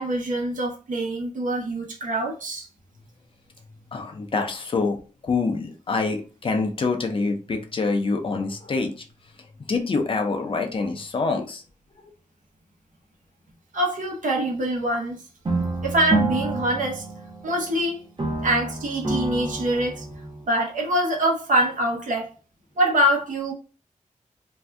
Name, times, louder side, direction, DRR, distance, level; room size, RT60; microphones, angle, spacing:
voice 1, 0.0-2.7 13.7-15.2 15.8-17.1 17.4-18.0 18.4-20.1 20.5-22.3 22.8-23.5, right 1 dB, 75° right, 0.8 m, -24 dB
voice 2, 3.9-5.0 5.2-8.9 9.7-11.6, left 4 dB, 40° left, 0.5 m, -25 dB
sound 1, 15.4-17.8 18.2-20.4, right 2 dB, 35° right, 0.7 m, -28 dB
2.6 x 2.2 x 3.3 m
wide cardioid pair, 175°, 13 cm